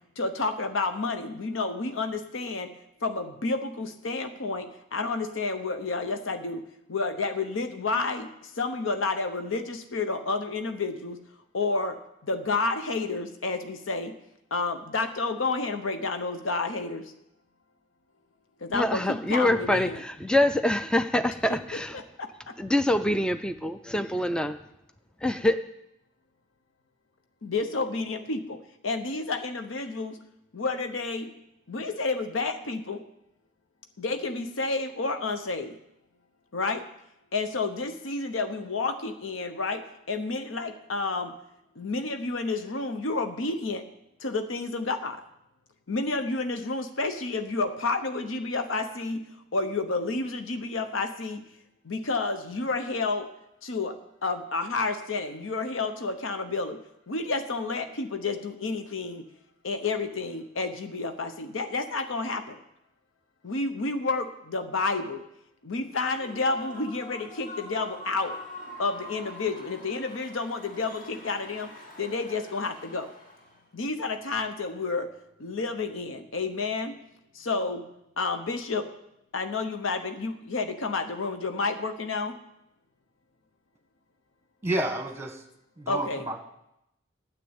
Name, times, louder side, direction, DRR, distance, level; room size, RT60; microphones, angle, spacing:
voice 1, 0.2-2.7 3.0-6.6 6.9-8.3 8.5-11.2 11.5-12.0 12.2-14.1 14.5-17.1 18.6-20.0 21.5-22.5 27.4-28.6 28.8-30.2 30.5-31.3 31.7-33.0 34.0-35.8 36.5-36.9 37.3-41.3 41.8-43.8 44.2-45.2 45.9-49.3 49.5-51.4 51.8-53.3 53.6-56.8 57.1-59.2 59.6-62.6 63.4-65.2 65.6-68.3 68.8-71.7 72.0-73.1 73.7-75.1 75.4-76.9 77.3-77.9 78.2-78.9 79.3-82.4 85.9-86.3, left 3 dB, 85° left, 8 dB, 0.8 m, -30 dB
voice 2, 18.7-22.0 22.6-24.5 25.2-25.6, left 1 dB, 5° left, 10 dB, 0.3 m, -25 dB
Human voice / Cheering / Applause, 66.0-73.6, left 1 dB, 40° left, 2.4 m, -44 dB
voice 3, 84.6-85.4 85.8-86.4, right 1 dB, 15° right, 5 dB, 1.3 m, -30 dB
9.4 x 7.6 x 8.7 m, 0.83 s
head